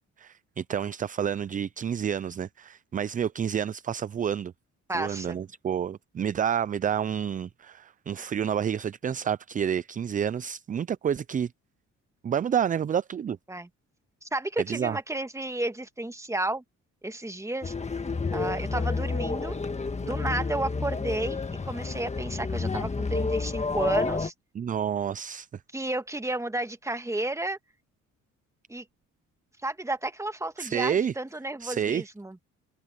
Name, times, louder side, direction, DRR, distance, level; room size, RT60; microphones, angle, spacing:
voice 1, 0.2-4.5 4.9-11.5 12.2-13.4 14.7-15.0 24.5-25.5 30.6-31.1 31.6-32.1, right 8 dB, 30° right, 0.4 m, -29 dB
voice 2, 4.9-5.4 13.5-13.7 14.2-16.6 17.0-17.7 18.3-19.6 20.0-24.3 25.7-27.6 28.7-28.8 29.6-32.4, right 2 dB, 10° right, 1.6 m, -32 dB
sound 1, 17.6-24.3, left 4 dB, 20° left, 1.7 m, -30 dB
cardioid pair, 90°, 30 cm